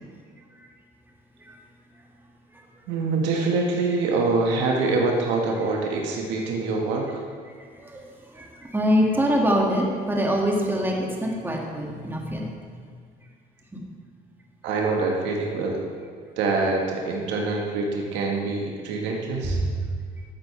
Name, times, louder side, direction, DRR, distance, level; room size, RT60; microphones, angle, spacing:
voice 1, 2.9-7.2 14.6-15.8 16.4-19.6, right 3 dB, 80° right, 0 dB, 1.5 m, -25 dB
voice 2, 8.3-12.5 19.5-19.7, equal, 10° right, -2 dB, 2.1 m, -24 dB
13.5 x 7.8 x 3.4 m, 2.1 s
supercardioid pair, 90°, 18 cm